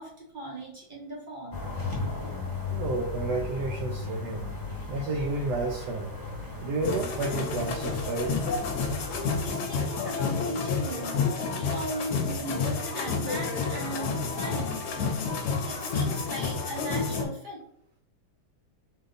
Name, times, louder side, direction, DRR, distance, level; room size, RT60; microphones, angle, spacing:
voice 1, 0.0-1.7 9.4-17.6, right 1 dB, 50° right, -4 dB, 0.6 m, -38 dB
sound 1, 1.5-9.5, left 3 dB, 15° left, 0.8 m, -36 dB
voice 2, 2.7-4.5 4.9-6.1 6.6-8.4, right 3 dB, 70° right, 2 dB, 1.0 m, -31 dB
sound 2, 6.8-17.2, left 4 dB, 65° left, 1.1 m, -30 dB
4.2 x 2.8 x 3.9 m, 0.70 s
omnidirectional pair, 2.2 m